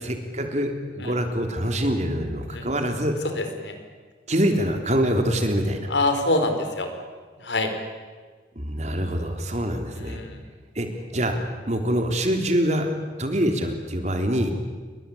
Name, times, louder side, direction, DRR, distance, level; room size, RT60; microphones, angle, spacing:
voice 1, 0.0-3.2 4.3-5.9 8.6-10.2 10.8-10.9 11.1-11.4 11.7-12.9 13.2-14.5, equal, 40° right, 5 dB, 3.5 m, -25 dB
voice 2, 3.3-3.7 5.9-6.9 7.4-7.7 10.0-10.4, left 2 dB, 85° left, 7 dB, 4.6 m, -25 dB
29.5 x 22.5 x 8.6 m, 1.5 s
head